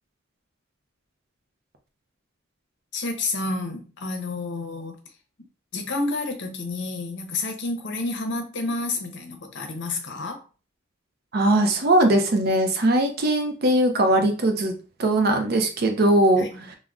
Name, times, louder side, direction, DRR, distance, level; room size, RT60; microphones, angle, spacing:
voice 1, 2.9-5.0 5.7-10.4 16.4-16.5, left 3 dB, 60° left, 4 dB, 0.6 m, -29 dB
voice 2, 11.3-14.7 15.0-16.5, right 1 dB, 50° right, 6 dB, 0.5 m, -20 dB
3.5 x 2.1 x 2.4 m, 0.35 s
head